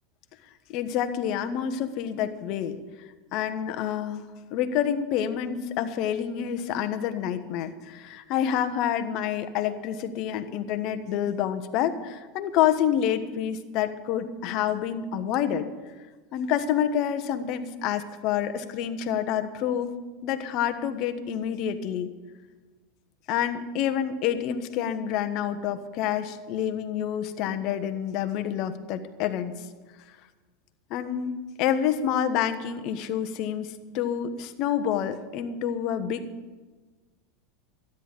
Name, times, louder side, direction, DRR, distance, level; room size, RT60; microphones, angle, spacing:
voice 1, 0.7-2.8 3.3-4.2 4.5-15.7 16.3-19.9 20.2-22.1 23.3-29.6 30.9-36.3, left 9 dB, 55° left, 9 dB, 1.2 m, -28 dB
13.0 x 10.0 x 7.4 m, 1.3 s
hypercardioid pair, 90°, 0 cm